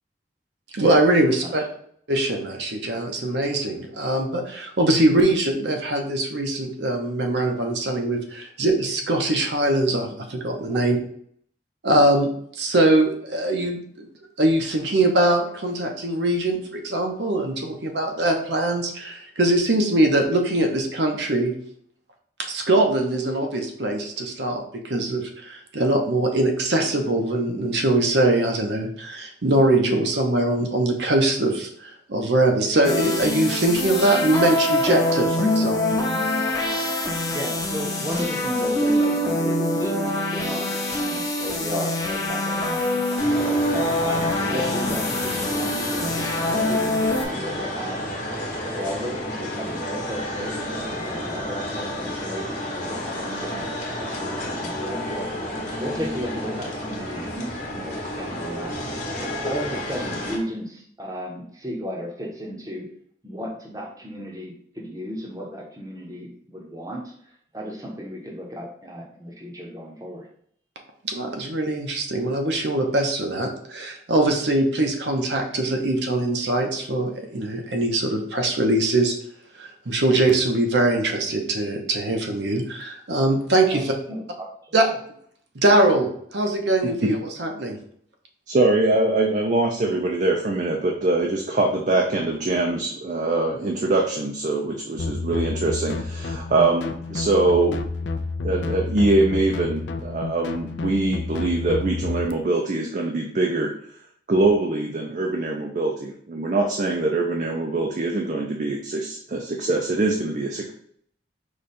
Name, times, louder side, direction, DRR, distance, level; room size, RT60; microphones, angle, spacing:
voice 1, 0.7-1.6 2.1-11.0 11.8-12.3 12.6-13.8 14.4-21.5 22.4-36.0 71.0-79.1 79.6-83.9 84.7-84.9 85.5-87.8, right 1 dB, 70° right, 2 dB, 0.8 m, -22 dB
sound 1, 32.8-47.2, left 1 dB, 20° left, 0.7 m, -24 dB
voice 2, 37.3-43.7 44.0-48.1 48.6-53.6 54.0-55.3 55.8-62.9 63.2-67.1 67.5-70.3 83.7-83.8 84.1-84.8, equal, 20° right, 0 dB, 0.8 m, -34 dB
sound 2, 43.2-60.4, left 1 dB, 40° left, 1.1 m, -31 dB
voice 3, 88.5-97.8 98.4-103.7 104.3-110.7, right 2 dB, 40° right, 1 dB, 0.4 m, -23 dB
sound 3, 95.0-102.3, left 3 dB, 75° left, 0.4 m, -30 dB
5.0 x 2.3 x 4.1 m, 0.63 s
head